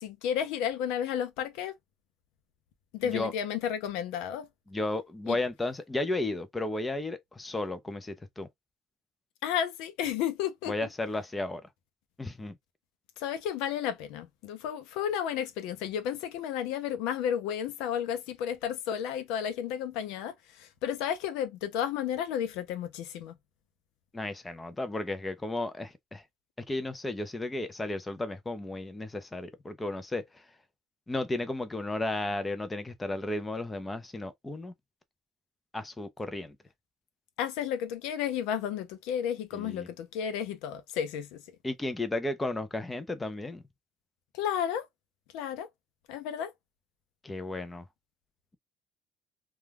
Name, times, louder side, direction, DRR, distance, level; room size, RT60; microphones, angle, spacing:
voice 1, 0.0-1.7 2.9-4.5 5.3-5.4 9.4-10.7 13.2-23.3 37.4-41.4 44.3-44.9 45.3-45.7 46.1-46.5, left 9 dB, 85° left, 0.5 m, -32 dB
voice 2, 4.7-8.5 10.7-11.6 12.2-12.5 24.1-26.2 26.7-30.2 31.1-34.7 35.7-36.6 39.5-39.9 41.6-43.6 47.2-47.8, left 2 dB, 15° left, 0.4 m, -34 dB
2.3 x 2.2 x 3.3 m
cardioid pair, 125°, 0 cm